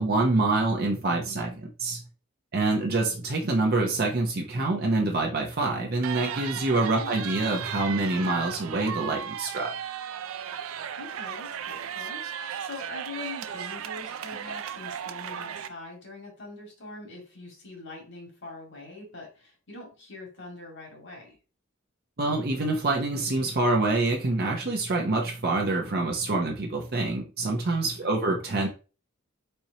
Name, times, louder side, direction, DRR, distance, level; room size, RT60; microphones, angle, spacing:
voice 1, 0.0-2.0 2.5-9.7 22.2-28.7, right 2 dB, 50° right, 0.7 m, -26 dB
sound 1, 6.0-15.7, right 9 dB, 80° right, 0.4 m, -36 dB
voice 2, 11.0-21.4 28.0-28.5, left 2 dB, 60° left, 1.8 m, -43 dB
4.4 x 4.3 x 2.8 m
head